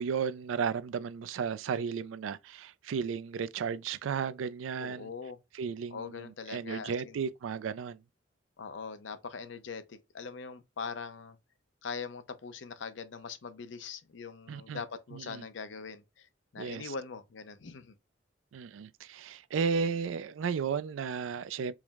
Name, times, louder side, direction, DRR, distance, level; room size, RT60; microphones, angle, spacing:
voice 1, 0.0-5.1 5.5-8.0 14.5-14.8 15.1-15.5 16.6-16.9 18.5-21.7, right 6 dB, 90° right, 0.4 m, -34 dB
voice 2, 4.8-5.4 5.9-7.3 8.6-11.4 11.8-16.3 16.5-18.0, left 5 dB, 75° left, 0.6 m, -42 dB
4.7 x 2.1 x 3.4 m
head